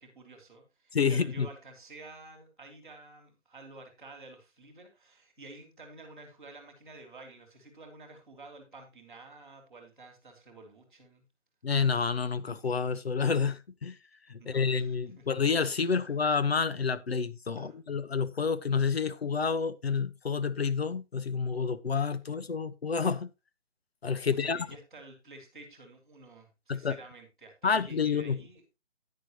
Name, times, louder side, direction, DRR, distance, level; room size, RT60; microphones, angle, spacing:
voice 1, 0.0-11.2 14.4-15.2 17.5-17.8 24.2-28.6, right 3 dB, ahead, 1.6 m, -51 dB
voice 2, 0.9-1.5 11.6-14.0 14.3-23.3 24.0-24.7 26.7-27.0 27.6-28.4, left 5 dB, 55° left, 1.1 m, -29 dB
11.0 x 9.8 x 3.0 m
hypercardioid pair, 170°, 36 cm